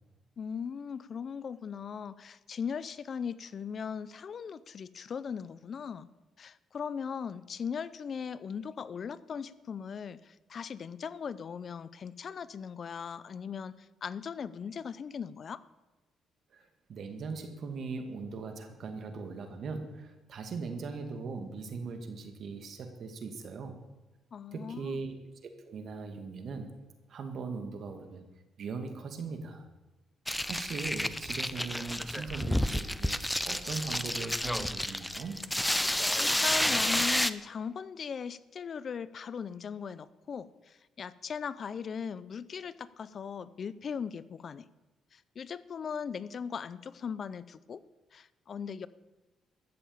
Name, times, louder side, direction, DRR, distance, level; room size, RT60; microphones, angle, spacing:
voice 1, 0.4-6.1 6.4-15.6 24.3-25.0 35.8-44.7 45.1-47.8 48.1-48.9, left 6 dB, 50° left, 17 dB, 0.6 m, -39 dB
voice 2, 16.5-23.8 24.5-25.1 25.7-26.7 27.1-28.3 28.6-29.7 30.5-33.2 33.4-35.4, right 4 dB, 60° right, 6 dB, 2.2 m, -39 dB
sound 1, 30.3-37.3, left 1 dB, 5° left, 0.6 m, -30 dB
14.0 x 7.3 x 8.8 m, 1.1 s
cardioid pair, 90°, 0 cm